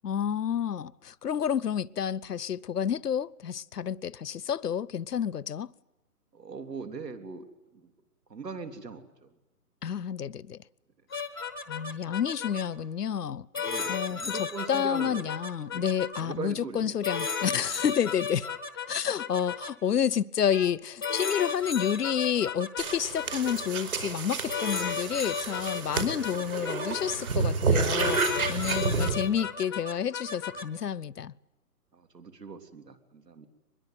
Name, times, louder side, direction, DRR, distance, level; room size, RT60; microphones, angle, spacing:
voice 1, 0.0-5.7 9.8-10.6 11.7-13.5 13.9-18.5 18.9-28.2 28.5-31.3, left 8 dB, 70° left, 0.9 m, -30 dB
voice 2, 6.3-7.5 7.7-7.9 8.3-9.3 13.6-15.4 15.7-15.9 16.2-16.9 17.4-17.9 25.9-26.2 28.5-28.8 31.9-33.5, right 5 dB, 80° right, 3.5 m, -41 dB
sound 1, 11.1-12.6 13.5-16.2 17.0-19.7 20.5-20.7 21.0-23.7 24.5-27.2 28.0-30.6, left 5 dB, 15° left, 0.8 m, -34 dB
sound 2, 22.8-29.1, right 4 dB, 60° right, 4.9 m, -30 dB
23.5 x 21.0 x 9.3 m
hypercardioid pair, 170°, 48 cm